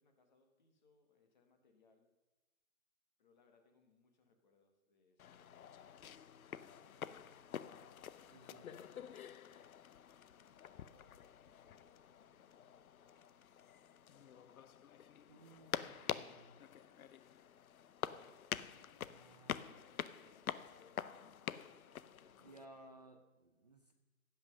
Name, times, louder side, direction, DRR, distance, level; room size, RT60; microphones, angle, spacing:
voice 1, 0.0-2.1 3.2-7.4 10.4-13.3 13.7-14.8 15.3-16.3 16.7-17.1 18.7-21.4 21.7-23.1, left 4 dB, 30° left, 5 dB, 1.4 m, -73 dB
sound 1, 5.2-22.7, left 9 dB, 80° left, 0.7 m, -47 dB
voice 2, 8.3-8.8 15.3-16.6 19.1-19.7 22.4-23.9, right 2 dB, 30° right, 4 dB, 0.6 m, -60 dB
15.0 x 5.9 x 6.3 m, 1.1 s
hypercardioid pair, 180°, 42 cm